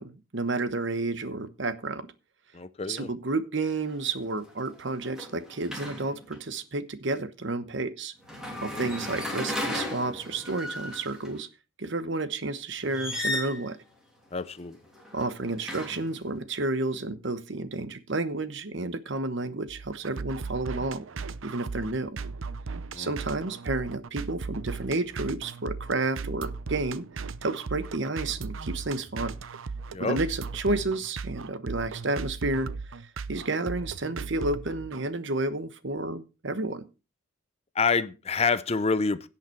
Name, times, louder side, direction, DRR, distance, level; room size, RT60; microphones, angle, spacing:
voice 1, 0.0-2.1 2.9-8.1 8.6-11.5 11.8-13.8 15.1-21.0 21.4-22.2 23.0-27.0 27.4-29.4 30.0-33.0 33.3-36.8, right 2 dB, 60° right, 1.1 m, -31 dB
voice 2, 2.5-3.1 8.7-8.8 14.3-14.8 22.9-23.1 29.9-30.2 37.8-39.3, left 4 dB, 30° left, 0.6 m, -27 dB
sound 1, 3.6-3.9 4.3-6.4 8.2-11.3 12.8-13.7 14.9-16.2, left 1 dB, 5° right, 3.1 m, -35 dB
sound 2, 19.7-35.1, right 4 dB, 80° right, 0.6 m, -37 dB
17.0 x 5.8 x 4.5 m
head